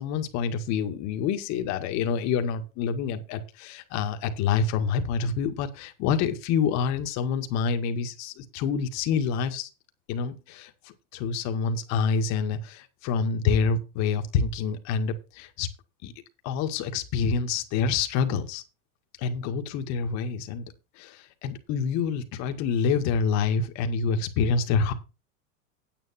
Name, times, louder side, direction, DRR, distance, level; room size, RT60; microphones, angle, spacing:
voice 1, 0.0-9.7 10.1-15.7 16.0-16.1 16.4-18.6 19.2-24.9, left 6 dB, 45° left, 1.9 m, -27 dB
9.4 x 8.7 x 4.3 m
supercardioid pair, 150°, 39 cm